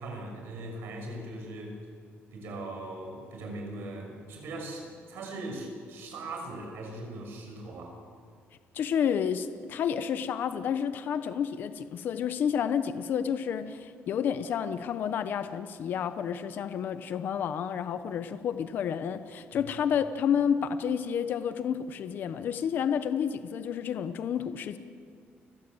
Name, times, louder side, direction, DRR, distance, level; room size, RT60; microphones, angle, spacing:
voice 1, 0.0-1.8 2.3-8.0 19.5-19.6, right 2 dB, 65° right, 2 dB, 6.3 m, -40 dB
voice 2, 8.7-24.8, left 8 dB, 50° left, 10 dB, 1.0 m, -30 dB
29.5 x 16.5 x 7.9 m, 2.1 s
cardioid pair, 175°, 4 cm